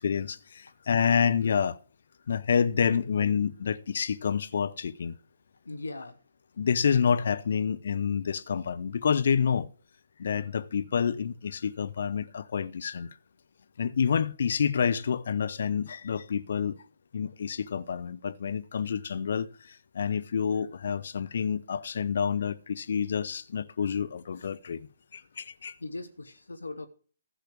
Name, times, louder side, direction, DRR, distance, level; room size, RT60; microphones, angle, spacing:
voice 1, 0.0-1.8 2.3-5.1 6.6-9.7 10.2-13.1 13.8-16.8 17.1-19.5 19.9-24.9 25.1-25.7, left 7 dB, 55° left, 0.8 m, -28 dB
voice 2, 5.6-6.2 25.8-26.9, left 2 dB, 70° left, 1.4 m, -39 dB
15.0 x 6.6 x 6.1 m
figure-of-eight pair, 130°, 0 cm